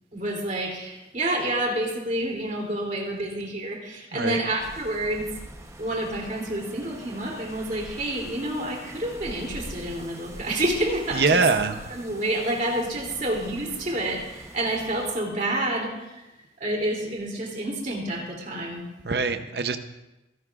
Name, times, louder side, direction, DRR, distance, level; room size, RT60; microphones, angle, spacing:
voice 1, 0.1-5.2 5.8-11.4 11.9-16.3 16.6-18.9, right 1 dB, 45° right, -1 dB, 2.9 m, -29 dB
sound 1, 4.6-15.1, right 1 dB, 15° right, 0.8 m, -43 dB
voice 2, 11.1-11.7 19.0-19.8, right 4 dB, 65° right, 8 dB, 0.7 m, -23 dB
25.5 x 11.0 x 2.4 m, 0.98 s
head